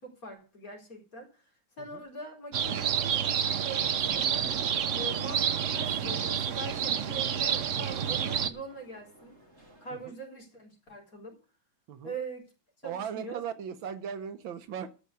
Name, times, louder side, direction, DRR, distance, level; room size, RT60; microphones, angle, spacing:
voice 1, 0.0-1.4 1.8-4.5 5.0-9.3 9.8-11.4 12.0-12.4 12.8-13.4, right 2 dB, 40° left, 0 dB, 4.4 m, -42 dB
sound 1, 2.5-8.5, right 8 dB, 55° right, 0.8 m, -29 dB
sound 2, 4.0-10.1, right 1 dB, 30° right, 3.8 m, -55 dB
voice 2, 12.8-14.9, right 8 dB, 75° right, 11 dB, 1.7 m, -37 dB
13.5 x 5.6 x 8.2 m, 0.35 s
omnidirectional pair, 2.2 m